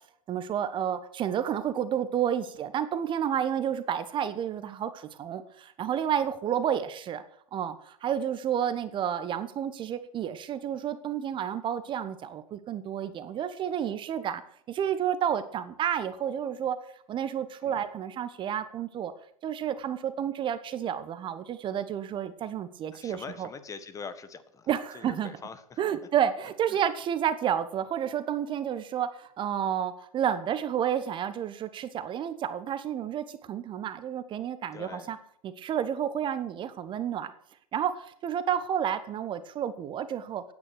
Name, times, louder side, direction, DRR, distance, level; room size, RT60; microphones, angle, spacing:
voice 1, 0.3-7.2 7.5-14.4 14.7-16.8 17.1-19.1 19.4-23.5 24.7-25.3 25.8-35.2 35.4-37.3 37.7-40.4, right 9 dB, 30° right, 12 dB, 1.1 m, -30 dB
voice 2, 22.9-24.7 24.9-25.8 34.7-35.2, left 5 dB, 20° left, 12 dB, 1.5 m, -43 dB
16.0 x 9.8 x 6.1 m, 0.66 s
figure-of-eight pair, 100°, 18 cm